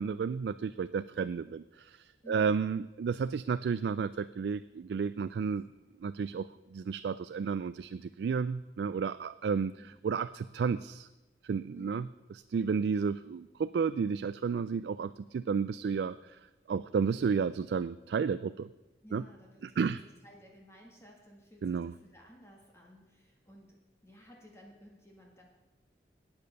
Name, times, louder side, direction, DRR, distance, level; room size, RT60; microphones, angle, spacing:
voice 1, 0.0-5.6 6.0-9.8 10.0-11.1 11.4-12.1 12.5-16.4 16.7-18.7 19.1-19.2 19.6-20.0 21.6-21.9, right 6 dB, 70° right, 13 dB, 0.3 m, -32 dB
voice 2, 2.2-2.6 9.8-10.0 11.7-12.2 19.0-19.8 20.2-25.4, equal, 15° left, -1 dB, 1.7 m, -55 dB
12.0 x 8.7 x 6.5 m, 1.1 s
head